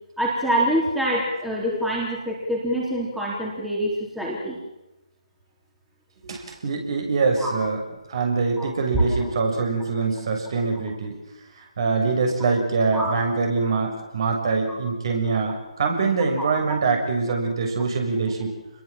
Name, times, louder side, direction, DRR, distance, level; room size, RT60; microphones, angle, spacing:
voice 1, 0.2-4.6 7.4-7.5 8.6-9.0 12.9-13.1 16.4-16.5, right 1 dB, 5° right, -4 dB, 4.0 m, -25 dB
voice 2, 6.2-7.8 8.1-11.1 11.8-18.5, right 4 dB, 45° right, 3 dB, 6.9 m, -24 dB
28.5 x 21.5 x 7.6 m, 1.0 s
figure-of-eight pair, 150°, 4 cm